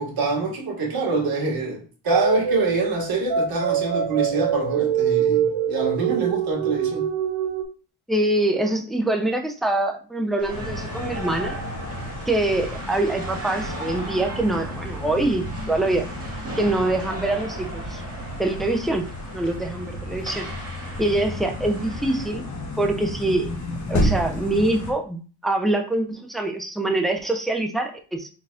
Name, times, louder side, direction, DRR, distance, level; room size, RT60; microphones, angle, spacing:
voice 1, 0.0-7.1, right 3 dB, 50° right, 1.9 m, -25 dB
sound 1, 2.1-7.6, right 7 dB, 80° right, 1.1 m, -24 dB
voice 2, 8.1-11.5 12.3-16.1 16.6-18.0 18.4-19.1 19.3-20.5 21.0-22.4 22.8-23.5 23.9-28.3, right 2 dB, ahead, 0.5 m, -24 dB
sound 2, 10.4-22.3, right 2 dB, 30° right, 1.8 m, -38 dB
sound 3, 10.5-24.9, left 1 dB, 35° left, 1.3 m, -32 dB
4.2 x 4.0 x 2.4 m
cardioid pair, 95°, 47 cm